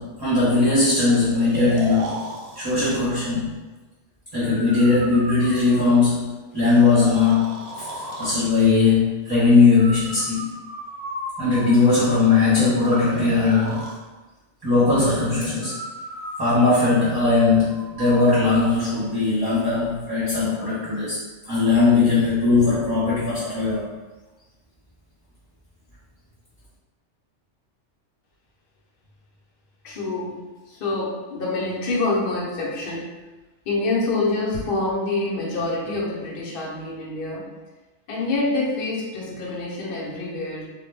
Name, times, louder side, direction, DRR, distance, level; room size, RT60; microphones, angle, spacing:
voice 1, 0.0-2.2 2.6-3.5 4.3-10.5 11.4-13.9 14.6-15.8 16.4-21.2 21.5-23.9, left 3 dB, 25° right, -11 dB, 0.6 m, -19 dB
Breathing, 1.3-3.1 4.4-6.1 6.6-8.4 9.8-12.0 12.8-14.0 15.6-18.5, right 1 dB, 65° right, 0.7 m, -36 dB
voice 2, 29.8-33.2 33.7-37.5 38.1-40.7, left 2 dB, 55° left, -4 dB, 0.8 m, -26 dB
2.2 x 2.1 x 3.2 m, 1.2 s
omnidirectional pair, 1.2 m